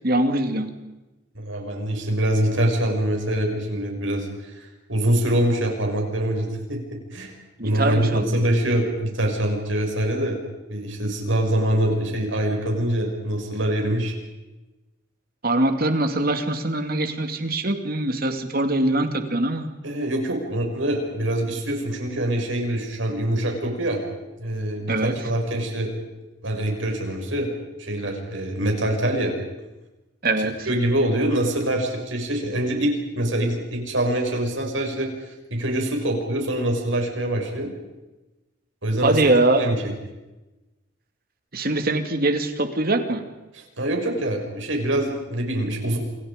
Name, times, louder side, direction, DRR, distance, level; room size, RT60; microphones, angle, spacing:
voice 1, 0.0-0.7 7.6-8.3 15.4-19.7 24.9-25.2 30.2-30.7 39.0-39.7 41.5-43.2, right 2 dB, 50° right, 6 dB, 2.6 m, -22 dB
voice 2, 1.3-6.8 7.1-7.3 7.6-10.4 10.7-14.1 19.8-24.0 24.4-25.9 26.4-27.5 27.8-29.3 30.4-37.7 38.8-39.2 39.6-39.8 43.5-46.0, right 1 dB, 75° right, 1 dB, 6.8 m, -24 dB
28.5 x 28.0 x 5.3 m, 1.1 s
head